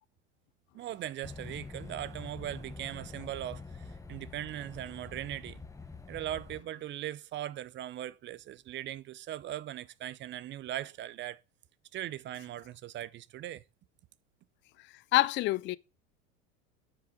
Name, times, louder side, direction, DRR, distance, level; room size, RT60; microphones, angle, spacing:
voice 1, 0.7-5.6 6.1-11.4 11.9-13.6, right 12 dB, 30° right, 0.5 m, -39 dB
sound 1, 1.2-6.6, left 3 dB, 10° left, 1.0 m, -46 dB
voice 2, 15.1-15.8, left 18 dB, 30° left, 0.4 m, -26 dB
9.5 x 5.8 x 3.8 m
hypercardioid pair, 85°, 39 cm